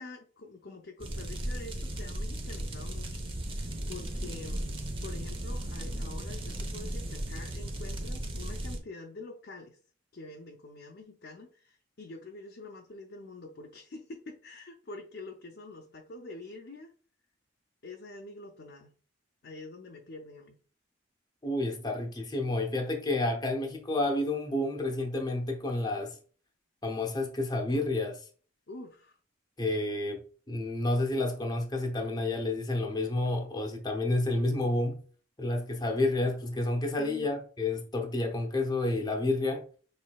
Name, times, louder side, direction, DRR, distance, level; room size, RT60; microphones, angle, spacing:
voice 1, 0.0-3.2 3.5-9.8 10.1-16.9 17.8-18.9 19.4-20.6 28.7-29.2 37.0-37.3, left 2 dB, 55° left, 0.6 m, -46 dB
sound 1, 1.0-8.8, right 1 dB, 25° right, 0.7 m, -36 dB
voice 2, 21.4-26.2 26.8-28.3 29.6-30.2 30.5-35.0 35.4-39.6, left 2 dB, 20° left, 0.8 m, -30 dB
6.3 x 3.3 x 2.3 m
head